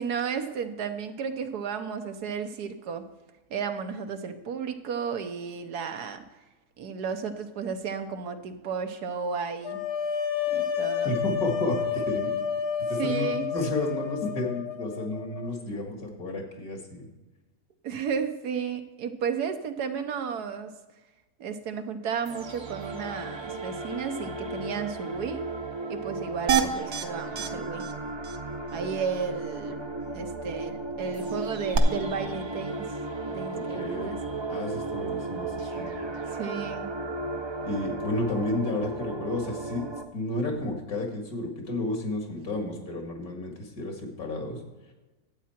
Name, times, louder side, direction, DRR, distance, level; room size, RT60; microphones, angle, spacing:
voice 1, 0.0-3.0 3.5-6.2 6.8-9.8 10.5-11.2 13.0-13.5 17.8-20.8 21.4-25.4 25.9-27.8 28.7-29.8 30.1-32.8 33.3-34.2 36.3-36.9, right 6 dB, 85° right, 7 dB, 1.5 m, -33 dB
sound 1, 9.6-15.5, left 8 dB, 50° left, 0.9 m, -30 dB
voice 2, 11.0-12.3 12.9-17.1 33.5-34.2 34.5-35.9 37.6-44.6, left 1 dB, 70° left, 3 dB, 2.5 m, -32 dB
sound 2, 22.2-40.0, right 2 dB, 40° right, 0.4 m, -35 dB
sound 3, 26.5-27.0 27.4-27.5 27.8-27.9 28.2-28.4 31.7-31.8, right 8 dB, 70° right, 1.3 m, -24 dB
12.5 x 8.6 x 4.4 m, 1.1 s
omnidirectional pair, 1.6 m